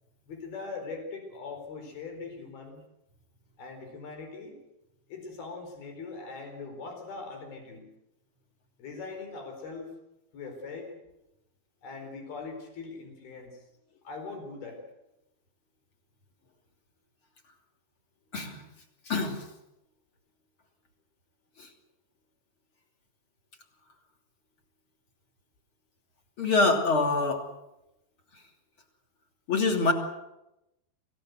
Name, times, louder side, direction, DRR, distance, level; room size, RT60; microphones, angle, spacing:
voice 1, 0.3-2.8 3.6-4.6 5.1-7.9 8.8-9.9 10.3-10.9 11.8-13.6 14.0-14.8, left 4 dB, 80° left, 4 dB, 6.2 m, -41 dB
voice 2, 19.1-19.4 26.4-27.4 29.5-29.9, left 3 dB, 35° left, 3 dB, 3.4 m, -25 dB
25.5 x 17.0 x 8.0 m, 0.91 s
omnidirectional pair, 4.3 m